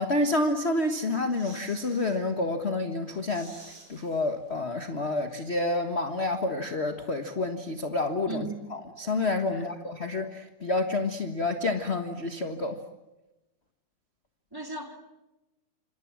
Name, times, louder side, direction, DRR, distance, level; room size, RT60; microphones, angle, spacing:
voice 1, 0.0-3.5 3.9-12.8, left 2 dB, 35° left, 1.0 m, -29 dB
sound 1, 0.9-2.2 2.6-2.7 3.0-4.8 5.0-5.1, right 2 dB, 30° right, 7.2 m, -51 dB
voice 2, 8.3-8.8 9.5-9.7 14.5-15.0, right 3 dB, 5° right, 2.4 m, -37 dB
28.5 x 27.0 x 7.4 m
omnidirectional pair, 3.5 m